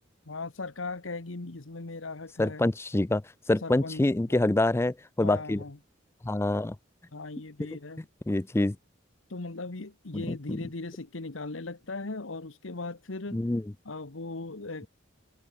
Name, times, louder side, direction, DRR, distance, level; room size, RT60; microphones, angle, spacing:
voice 1, 0.2-2.6 3.6-4.4 5.2-5.8 7.1-8.1 9.3-13.4 13.8-14.9, left 3 dB, 90° left, 1.4 m, -38 dB
voice 2, 2.4-3.2 3.5-5.6 6.2-6.7 8.3-8.8 10.1-10.6 13.3-13.6, left 2 dB, 15° left, 0.4 m, -26 dB
head